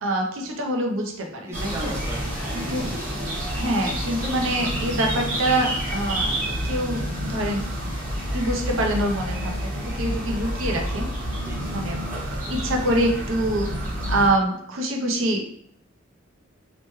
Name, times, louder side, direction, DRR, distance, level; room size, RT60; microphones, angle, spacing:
voice 1, 0.0-1.9 2.5-2.9 3.5-7.0 7.3-7.7 8.3-11.1 11.7-12.0 12.5-13.7 14.1-15.5, right 1 dB, 80° right, 2 dB, 0.6 m, -25 dB
voice 2, 1.5-3.2 11.4-11.7, right 2 dB, 15° right, -2 dB, 0.4 m, -37 dB
sound 1, 1.5-14.3, equal, 40° right, 0.8 m, -29 dB
2.9 x 2.2 x 3.0 m, 0.67 s
head